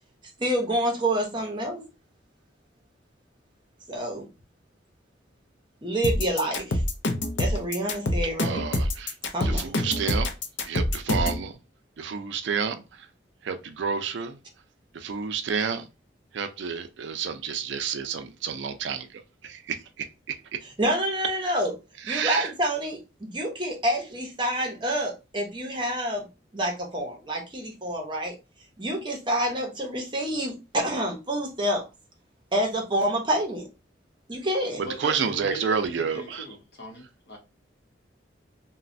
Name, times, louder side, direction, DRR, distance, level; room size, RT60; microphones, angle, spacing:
voice 1, 0.4-1.8 3.9-4.3 5.8-6.8 7.4-8.6 9.3-9.9 20.6-21.7 22.0-26.3 26.5-28.3 28.8-31.8 32.5-33.7 34.3-34.8, right 1 dB, 25° right, 0.7 m, -28 dB
sound 1, 6.0-11.4, left 1 dB, 80° left, 0.5 m, -26 dB
voice 2, 8.4-9.1 9.4-10.3 10.7-11.5 12.0-12.8 13.4-14.4 14.9-15.8 16.3-20.3 22.1-22.5 35.0-36.4, right 6 dB, 75° right, 0.4 m, -30 dB
voice 3, 34.8-37.4, equal, 60° left, 0.9 m, -40 dB
3.1 x 2.1 x 2.5 m
head